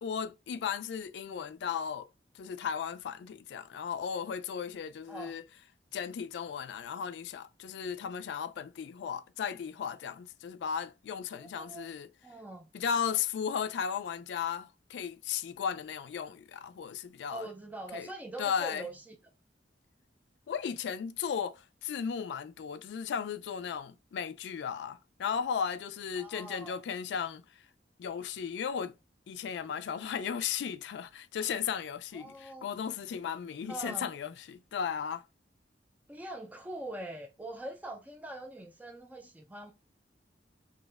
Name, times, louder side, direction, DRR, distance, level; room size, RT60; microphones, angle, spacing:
voice 1, 0.0-2.1 2.3-5.4 5.9-12.1 12.7-17.5 17.9-18.1 18.4-18.9 20.5-27.4 28.0-28.9 29.3-35.3, left 7 dB, 75° left, 0.3 m, -35 dB
voice 2, 11.3-11.9 12.2-12.7 17.3-19.2 26.2-26.8 32.1-32.7 33.7-34.1 36.1-39.7, right 1 dB, 10° right, 0.3 m, -43 dB
2.8 x 2.1 x 3.3 m
head